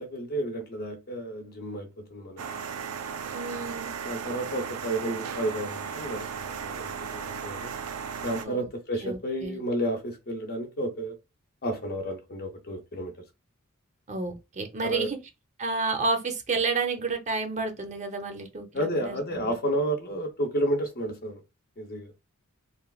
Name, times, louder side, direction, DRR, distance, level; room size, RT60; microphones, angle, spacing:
voice 1, 0.0-2.6 4.0-7.7 8.2-11.2 11.6-13.1 14.8-15.1 18.7-21.4 21.8-22.1, right 1 dB, 45° left, 0.7 m, -31 dB
sound 1, 2.4-8.5, right 6 dB, 80° right, 0.4 m, -36 dB
voice 2, 3.3-3.9 8.4-8.7 9.0-9.6 14.1-15.2 15.6-19.5, right 3 dB, 35° right, 0.6 m, -30 dB
3.1 x 2.2 x 2.3 m
head